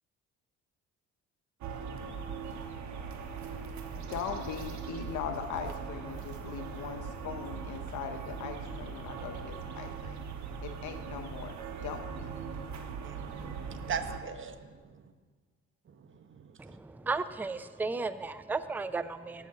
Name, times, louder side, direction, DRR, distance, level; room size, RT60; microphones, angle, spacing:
Une terrasse de la ville, 1.6-14.2, right 6 dB, 70° right, 1.1 m, -40 dB
voice 1, 4.0-10.2 10.6-12.3, left 7 dB, 80° left, 6 dB, 0.8 m, -40 dB
voice 2, 13.0-15.1 15.9-16.8, right 6 dB, 40° right, 9 dB, 0.9 m, -40 dB
voice 3, 16.6-19.5, right 3 dB, 5° right, 13 dB, 0.4 m, -34 dB
10.0 x 5.6 x 7.6 m, 1.5 s
cardioid pair, 90°, 30 cm